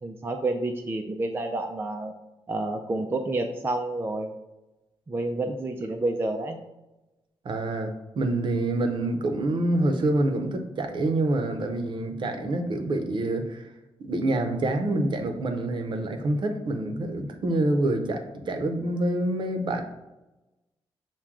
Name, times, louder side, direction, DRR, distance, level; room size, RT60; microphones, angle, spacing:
voice 1, 0.0-2.1 2.5-4.3 5.1-6.6, right 2 dB, 25° right, 3 dB, 0.4 m, -29 dB
voice 2, 7.4-13.7 14.0-19.8, right 2 dB, 55° right, 5 dB, 0.7 m, -26 dB
5.9 x 2.2 x 3.6 m, 1.0 s
cardioid pair, 95°, 10 cm